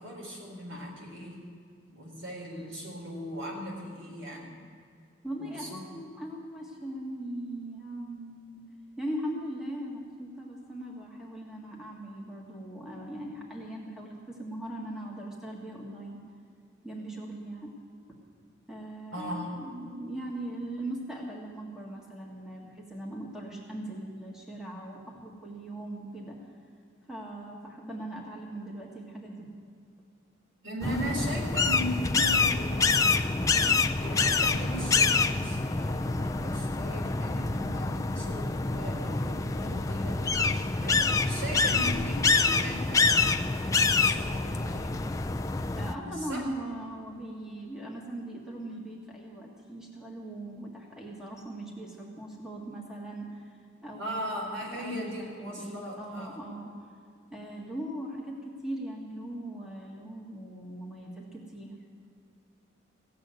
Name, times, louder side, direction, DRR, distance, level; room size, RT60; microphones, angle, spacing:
voice 1, 0.0-1.4 1.9-4.5 5.4-5.9 19.1-19.5 30.6-43.5 43.9-45.0 45.9-46.4 54.0-56.4, equal, 80° right, -1 dB, 4.3 m, -38 dB
voice 2, 5.2-8.6 9.0-16.2 16.8-17.7 18.7-26.4 27.1-29.5 45.7-53.6 53.8-54.5 54.7-56.8 57.3-61.7, right 1 dB, 5° right, -2 dB, 1.7 m, -40 dB
sound 1, 30.8-45.9, left 4 dB, 15° left, 0.4 m, -26 dB
16.0 x 7.7 x 9.3 m, 2.3 s
head